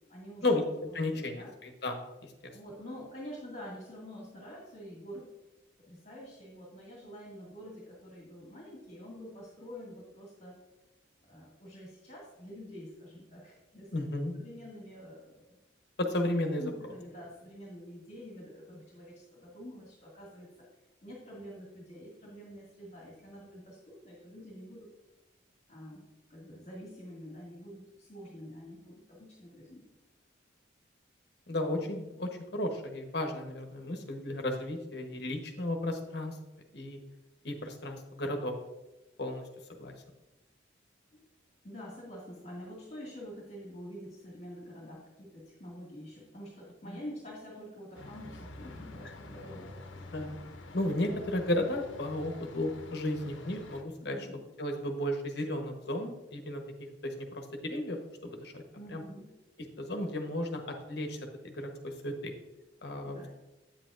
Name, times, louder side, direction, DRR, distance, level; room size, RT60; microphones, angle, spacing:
voice 1, 0.1-1.5 2.5-5.3 5.8-10.6 11.2-13.9 14.3-15.6 16.6-20.5 21.0-24.9 25.7-26.0 26.3-29.8 41.1-41.2 41.6-50.4 54.0-54.4 58.7-59.3 63.0-63.3, equal, 35° left, -4 dB, 1.9 m, -47 dB
voice 2, 0.9-2.0 2.4-2.5 13.9-14.3 16.0-16.7 31.5-36.4 36.7-37.0 37.4-38.5 39.2-39.4 39.7-39.9 50.1-50.4 50.7-54.2 54.6-56.6 57.0-58.0 58.2-58.6 58.9-59.0 59.8-62.3 62.8-63.3, left 1 dB, 60° left, 3 dB, 1.0 m, -34 dB
sound 1, 47.9-53.8, left 2 dB, 80° left, 0.8 m, -48 dB
8.8 x 7.5 x 2.5 m, 1.0 s
head